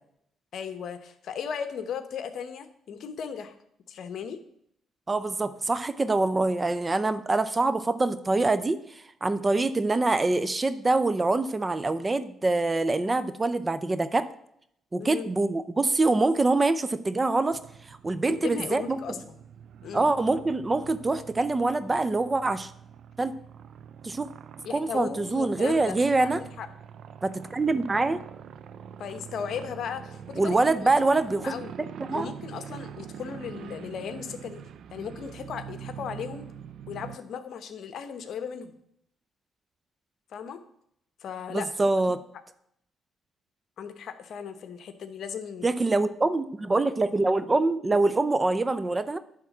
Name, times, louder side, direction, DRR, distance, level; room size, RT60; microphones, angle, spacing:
voice 1, 0.5-3.6 3.9-4.4 15.0-15.3 18.3-19.4 19.8-20.1 24.6-26.0 26.2-26.7 29.0-31.7 32.1-34.6 34.9-36.5 36.9-38.8 40.3-40.6 41.2-41.7 43.8-45.7, left 7 dB, 65° left, 10 dB, 0.9 m, -36 dB
voice 2, 5.1-8.8 9.2-14.3 14.9-17.6 17.9-19.0 19.9-22.7 23.2-23.3 24.0-24.3 24.7-26.4 27.2-28.2 30.4-31.5 32.1-32.3 41.5-42.2 45.6-49.2, right 2 dB, 25° right, 13 dB, 0.6 m, -25 dB
sound 1, 17.5-37.2, right 8 dB, 70° right, 0.5 m, -44 dB
10.5 x 3.7 x 7.2 m, 0.72 s
cardioid pair, 90°, 0 cm